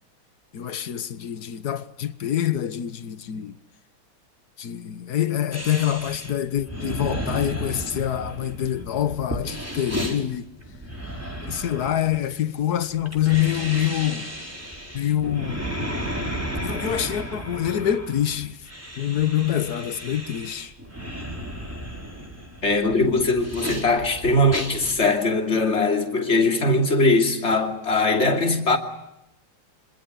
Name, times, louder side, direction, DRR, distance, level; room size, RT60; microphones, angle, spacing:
voice 1, 0.5-3.5 4.6-10.4 11.5-14.3 14.9-15.7 16.6-18.5 19.0-20.7, left 11 dB, 55° left, 1.5 m, -25 dB
sound 1, 5.5-25.0, equal, 5° right, 4.2 m, -34 dB
voice 2, 22.6-28.8, left 2 dB, 30° left, 3.0 m, -21 dB
27.0 x 25.5 x 6.8 m
omnidirectional pair, 2.3 m